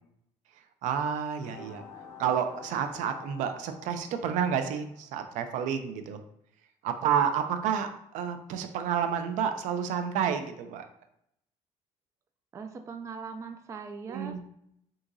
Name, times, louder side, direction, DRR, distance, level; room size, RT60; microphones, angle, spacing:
voice 1, 0.8-1.8 2.2-6.2 6.8-10.9 14.1-14.4, right 8 dB, 75° right, 8 dB, 0.5 m, -30 dB
sound 1, 1.4-5.3, left 5 dB, 20° left, 0.9 m, -49 dB
voice 2, 12.5-14.4, right 5 dB, 25° right, 6 dB, 0.3 m, -40 dB
6.2 x 2.9 x 2.6 m, 0.76 s
cardioid pair, 150°, 13 cm